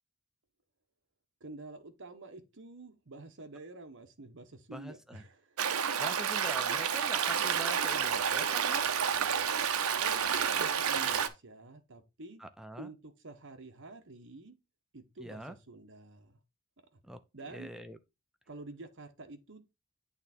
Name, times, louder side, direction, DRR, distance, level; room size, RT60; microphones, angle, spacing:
voice 1, 1.4-5.6 10.0-12.4 12.8-14.5 14.9-16.4 16.9-17.0 17.3-17.7 18.5-19.6, right 2 dB, 60° right, 1.2 m, -49 dB
voice 2, 4.7-5.2 6.0-9.0 12.4-12.9 15.2-15.6 17.0-17.2 17.5-18.0, equal, ahead, 0.4 m, -44 dB
Stream, 5.6-11.3, right 7 dB, 80° right, 0.7 m, -30 dB
8.8 x 3.6 x 4.2 m
head